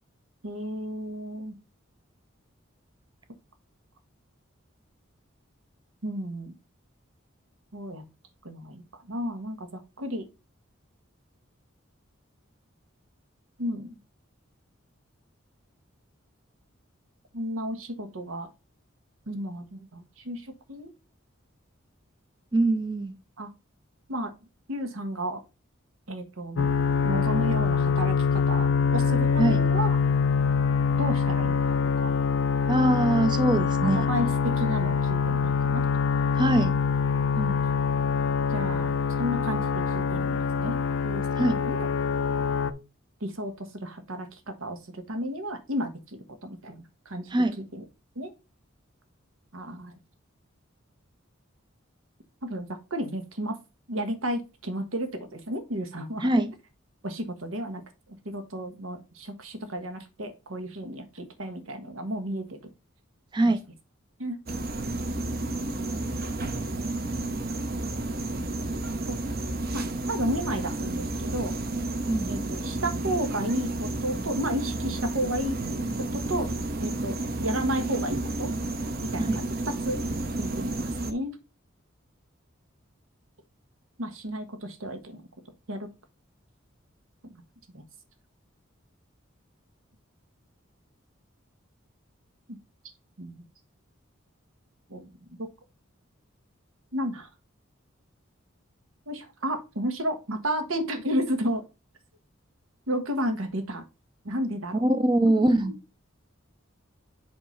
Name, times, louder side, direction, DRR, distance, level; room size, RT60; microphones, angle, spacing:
voice 1, 0.4-1.5 6.0-6.5 7.7-8.0 8.4-10.3 13.6-14.0 17.3-18.5 19.3-20.9 23.4-23.5 24.1-24.3 24.7-25.4 26.1-26.7 27.0-30.0 30.9-32.1 33.8-35.9 37.3-37.6 38.5-38.9 39.2-40.8 41.0-41.9 43.2-45.9 46.4-47.3 47.6-47.8 48.1-48.3 49.5-50.0 52.4-53.6 53.9-56.3 57.0-57.8 58.2-62.6 63.4-63.5 64.2-64.4 69.7-71.5 72.3-75.6 76.0-76.5 76.8-78.5 79.0-80.0 80.4-81.4 84.0-85.2 85.7-85.9 87.7-87.8 93.2-93.4 94.9-95.1 95.4-95.5 96.9-97.3 99.1-101.6 102.9-103.8 104.2-104.8 105.2-105.7, equal, 90° right, 1.3 m, -32 dB
voice 2, 22.5-23.2 29.4-29.6 32.7-34.1 36.4-36.8 41.4-41.6 47.3-47.6 56.2-56.5 63.3-63.6 72.1-72.3 79.2-79.4 104.8-105.8, right 1 dB, 20° right, 0.5 m, -23 dB
sound 1, 26.6-42.7, left 5 dB, 75° left, 0.5 m, -25 dB
sound 2, 64.5-81.1, right 2 dB, 50° right, 0.8 m, -31 dB
7.8 x 2.8 x 5.8 m
head